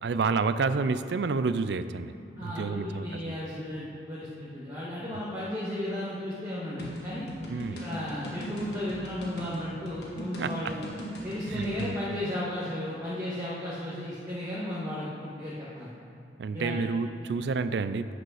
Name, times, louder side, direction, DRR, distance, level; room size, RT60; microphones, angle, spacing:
voice 1, 0.0-2.1 2.4-3.3 5.1-5.2 7.5-7.9 10.4-10.5 11.5-11.9 16.4-18.1, right 4 dB, 70° right, 12 dB, 0.4 m, -29 dB
voice 2, 2.1-7.3 7.8-10.8 11.2-15.9 16.5-16.8, left 1 dB, 20° right, -9 dB, 1.4 m, -34 dB
sound 1, 6.8-11.9, equal, 65° left, 1.6 m, -39 dB
9.3 x 5.1 x 6.4 m, 2.7 s
head